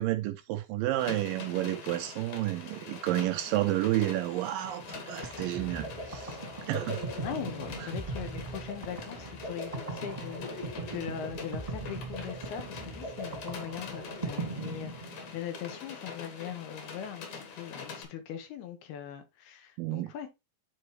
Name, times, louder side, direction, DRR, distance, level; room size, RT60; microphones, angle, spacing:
voice 1, 0.0-6.4 6.7-7.0 19.8-20.1, right 15 dB, 75° right, 2.2 m, -30 dB
sound 1, 1.0-18.0, left 5 dB, 60° left, 2.4 m, -45 dB
sound 2, 4.6-15.5, right 2 dB, 20° right, 1.0 m, -39 dB
voice 2, 7.2-20.3, left 9 dB, 90° left, 3.3 m, -41 dB
10.0 x 4.2 x 3.2 m
omnidirectional pair, 4.4 m